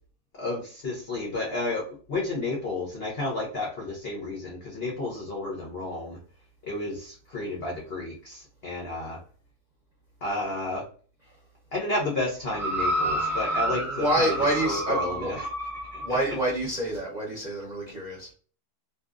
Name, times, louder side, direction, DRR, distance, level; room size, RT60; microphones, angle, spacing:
voice 1, 0.4-6.2 6.6-9.2 10.2-10.8 11.7-14.3 14.6-15.5 15.9-16.2, left 2 dB, 70° left, 0.5 m, -31 dB
sound 1, 12.5-16.1 16.9-17.0, right 1 dB, ahead, 0.7 m, -29 dB
voice 2, 13.7-15.3 16.0-18.3, right 1 dB, 45° right, 0.6 m, -27 dB
2.7 x 2.4 x 2.4 m
omnidirectional pair, 1.9 m